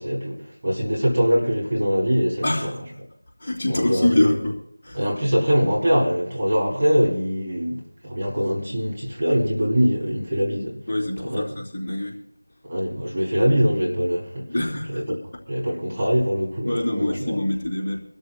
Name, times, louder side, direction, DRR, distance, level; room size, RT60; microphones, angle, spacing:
voice 1, 0.0-2.7 3.7-4.4 4.9-10.8 11.2-11.6 12.6-14.5 14.9-15.2 15.5-17.4, equal, 25° right, -4 dB, 2.9 m, -23 dB
voice 2, 2.4-2.7 3.4-4.5 4.8-5.0 10.9-12.2 14.5-15.2 16.6-18.0, left 1 dB, 20° left, -6 dB, 3.0 m, -24 dB
26.0 x 13.5 x 2.2 m, 0.67 s
figure-of-eight pair, 175°, 0 cm